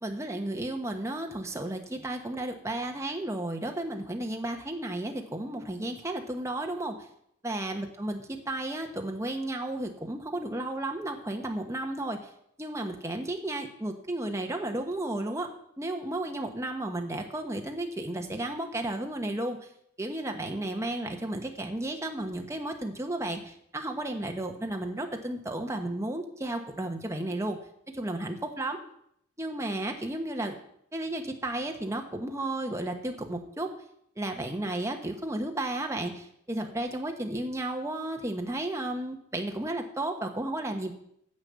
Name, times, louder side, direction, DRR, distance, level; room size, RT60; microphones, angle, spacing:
voice 1, 0.0-6.9 7.4-12.2 12.6-15.5 15.8-19.6 20.0-27.6 27.9-28.8 29.4-30.6 30.9-33.7 34.2-40.9, right 1 dB, 15° right, 3 dB, 1.2 m, -33 dB
9.8 x 7.0 x 6.9 m, 0.71 s
head